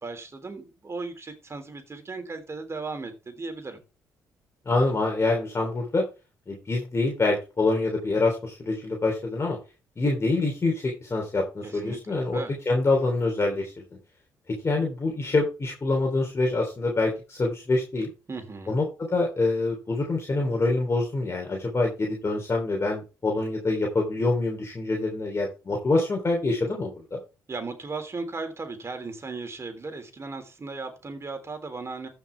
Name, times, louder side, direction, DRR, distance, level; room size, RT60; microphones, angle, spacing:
voice 1, 0.0-3.8 11.6-12.5 18.3-18.8 27.5-32.1, right 3 dB, 35° right, 7 dB, 3.4 m, -36 dB
voice 2, 4.6-6.0 6.5-9.6 10.0-13.8 14.5-18.1 18.7-27.2, left 2 dB, 35° left, 0 dB, 3.3 m, -26 dB
14.5 x 6.0 x 3.4 m, 0.30 s
supercardioid pair, 60°, 8 cm